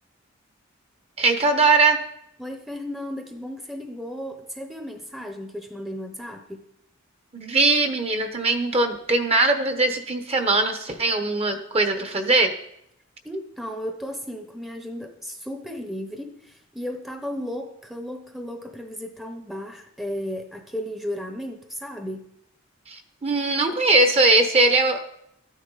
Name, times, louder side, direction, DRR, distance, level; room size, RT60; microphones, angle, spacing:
voice 1, 1.2-2.0 7.3-12.5 22.9-25.0, right 3 dB, 30° right, 6 dB, 1.1 m, -20 dB
voice 2, 2.4-6.6 13.2-22.3, equal, ahead, 4 dB, 0.9 m, -34 dB
13.5 x 10.0 x 4.1 m, 0.78 s
head